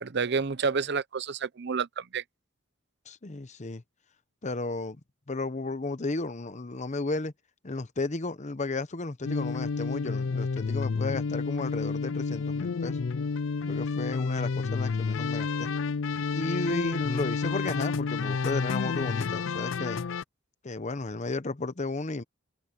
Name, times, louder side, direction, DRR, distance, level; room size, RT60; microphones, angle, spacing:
voice 1, 0.0-2.2, right 5 dB, 55° right, 0.7 m, -29 dB
voice 2, 3.1-3.8 4.4-5.0 5.3-7.3 7.6-13.0 13.6-15.7 16.3-20.0 20.6-22.2, left 2 dB, 35° left, 0.9 m, -33 dB
sound 1, 9.2-20.2, left 5 dB, 65° left, 0.5 m, -30 dB
open air
head